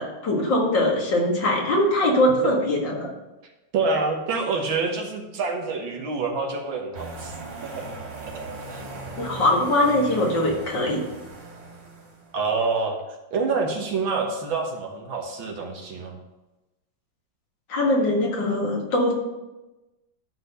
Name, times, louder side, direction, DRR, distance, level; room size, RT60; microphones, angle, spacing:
voice 1, 0.0-3.1 9.2-11.0 17.7-19.1, left 1 dB, 65° left, -1 dB, 2.4 m, -22 dB
voice 2, 3.7-7.3 7.6-7.9 8.7-8.8 12.3-13.0 13.3-16.2, right 4 dB, 80° right, 0 dB, 2.1 m, -27 dB
sound 1, 6.9-12.4, right 3 dB, 65° right, 3.4 m, -38 dB
11.5 x 4.2 x 6.8 m, 1.0 s
omnidirectional pair, 2.1 m